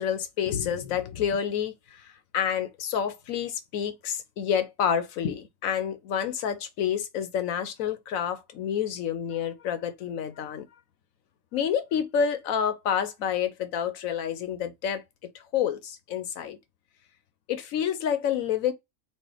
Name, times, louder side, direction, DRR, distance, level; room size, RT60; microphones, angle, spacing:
voice 1, 0.0-10.7 11.5-15.0 15.3-16.6 17.5-18.7, left 8 dB, 70° left, 1.2 m, -29 dB
4.4 x 2.5 x 4.8 m
omnidirectional pair, 1.5 m